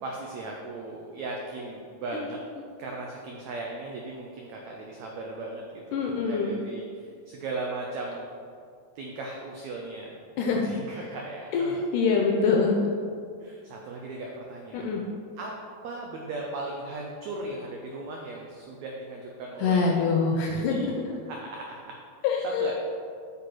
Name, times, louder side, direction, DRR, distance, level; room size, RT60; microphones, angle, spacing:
voice 1, 0.0-2.4 2.8-8.3 8.9-10.2 10.6-11.8 13.4-15.5 15.8-19.8 20.5-20.9 21.3-22.0 22.4-22.7, right 2 dB, 90° right, 0 dB, 1.5 m, -37 dB
voice 2, 5.9-6.6 10.4-10.6 11.5-12.7 14.7-15.0 19.6-20.8 22.2-22.7, left 5 dB, 80° left, 0 dB, 2.0 m, -24 dB
8.5 x 6.7 x 4.7 m, 2.3 s
omnidirectional pair, 4.2 m